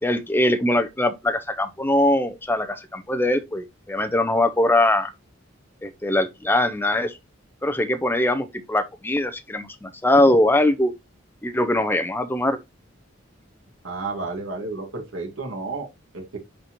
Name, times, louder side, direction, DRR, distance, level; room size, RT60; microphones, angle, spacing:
voice 1, 0.0-5.1 5.8-7.2 7.6-10.9 11.4-12.6, left 1 dB, 10° left, 0.7 m, -22 dB
voice 2, 13.8-16.4, right 3 dB, 85° right, 2.1 m, -32 dB
10.5 x 4.2 x 3.0 m
head